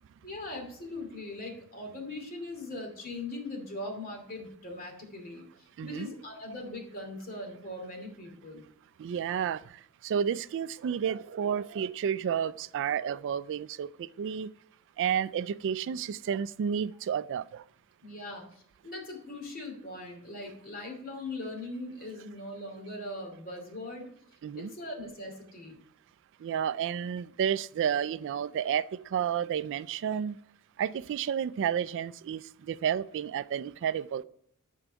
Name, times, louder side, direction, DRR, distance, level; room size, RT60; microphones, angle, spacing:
voice 1, 0.2-8.6 18.0-24.1 24.5-25.8, left 2 dB, 40° left, 2 dB, 2.5 m, -40 dB
voice 2, 9.0-9.6 10.0-14.5 15.0-17.6 24.4-24.7 26.4-30.4 30.8-34.2, right 8 dB, 55° right, 16 dB, 0.3 m, -31 dB
11.5 x 4.6 x 5.1 m, 0.64 s
head